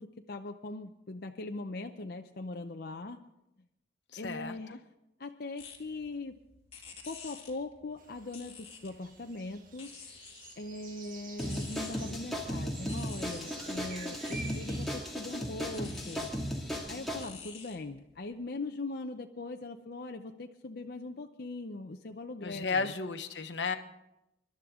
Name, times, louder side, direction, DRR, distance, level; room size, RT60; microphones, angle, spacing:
voice 1, 0.0-3.2 4.2-4.8 5.2-6.4 7.1-9.9 10.6-16.3 16.9-22.9, left 2 dB, 55° left, 4 dB, 0.7 m, -41 dB
voice 2, 4.1-4.5 22.4-23.7, left 4 dB, 80° left, 8 dB, 1.2 m, -33 dB
sound 1, 5.6-18.4, left 6 dB, 35° left, 2.6 m, -52 dB
sound 2, 8.0-15.1, right 4 dB, 50° right, 1.6 m, -50 dB
sound 3, 11.4-17.2, equal, ahead, 2.3 m, -36 dB
26.0 x 12.0 x 3.7 m, 0.88 s
head